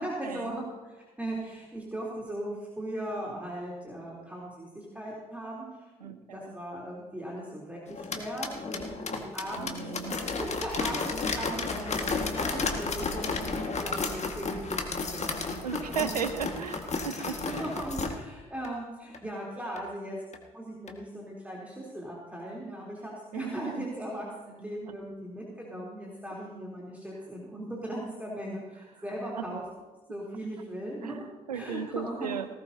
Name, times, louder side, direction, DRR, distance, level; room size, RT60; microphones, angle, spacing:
voice 1, 0.0-5.6 6.0-9.8 10.1-11.1 11.3-13.5 13.7-14.8 15.1-15.4 16.0-16.2 17.1-20.2 20.5-29.6 30.1-31.2 31.5-32.3, right 1 dB, 5° right, -4 dB, 3.6 m, -38 dB
voice 2, 6.0-6.5 9.5-10.2 14.5-14.6 15.6-17.7 23.3-23.9 24.9-25.0 29.4-29.6 31.0-32.5, right 7 dB, 85° right, 11 dB, 0.6 m, -36 dB
sound 1, 7.9-18.1 18.6-18.7 19.1-19.2 19.8-19.9 20.3-20.4 20.9-21.0, left 4 dB, 35° left, 1.9 m, -33 dB
19.0 x 16.0 x 2.9 m, 1.1 s
figure-of-eight pair, 45°, 20 cm